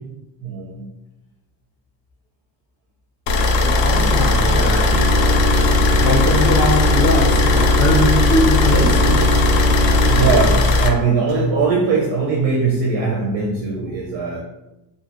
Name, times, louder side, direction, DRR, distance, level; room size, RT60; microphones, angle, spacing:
voice 1, 0.4-0.9 10.0-14.4, right 4 dB, 75° right, -3 dB, 0.6 m, -20 dB
sound 1, 3.3-10.9, left 2 dB, 85° left, 0.5 m, -17 dB
voice 2, 3.6-4.9 6.0-9.3, left 1 dB, 30° left, 0 dB, 0.5 m, -21 dB
sound 2, 4.3-10.5, left 1 dB, 30° right, 0.4 m, -22 dB
2.4 x 2.4 x 2.9 m, 0.96 s
cardioid pair, 175°, 43 cm